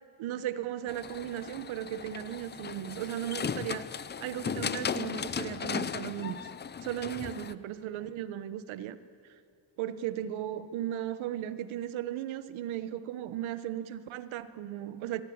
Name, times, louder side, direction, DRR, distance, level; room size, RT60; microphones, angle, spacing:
voice 1, 0.2-3.9 4.2-6.4 6.8-9.0 9.8-15.2, right 12 dB, 80° right, 13 dB, 1.3 m, -36 dB
sound 1, 0.9-7.5, left 7 dB, 25° left, 0.5 m, -36 dB
23.0 x 21.5 x 8.8 m, 2.3 s
cardioid pair, 140°, 47 cm